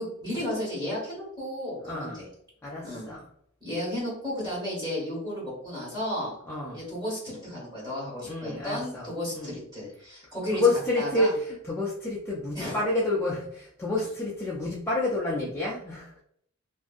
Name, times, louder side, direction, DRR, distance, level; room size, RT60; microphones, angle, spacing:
voice 1, 0.0-2.2 2.8-3.1 3.6-6.3 6.7-10.6 11.0-11.3 12.5-12.8, left 1 dB, 20° right, -6 dB, 1.5 m, -33 dB
voice 2, 1.8-2.2 2.6-3.3 6.5-6.8 8.2-9.1 9.3-9.6 10.5-16.2, left 2 dB, 10° left, -6 dB, 0.3 m, -29 dB
2.6 x 2.5 x 2.4 m, 0.70 s
head